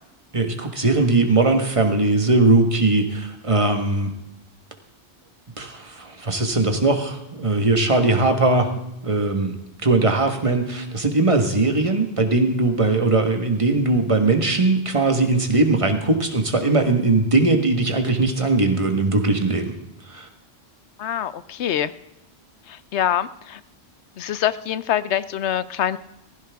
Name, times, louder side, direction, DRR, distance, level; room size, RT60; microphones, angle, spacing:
voice 1, 0.3-4.1 5.6-8.7 9.0-9.5 9.8-19.7 20.1-20.3, right 2 dB, 30° right, 5 dB, 1.5 m, -20 dB
voice 2, 21.0-21.9 22.7-23.6 24.2-26.0, left 10 dB, 85° left, 15 dB, 1.0 m, -25 dB
16.0 x 15.0 x 3.5 m, 0.84 s
omnidirectional pair, 1.1 m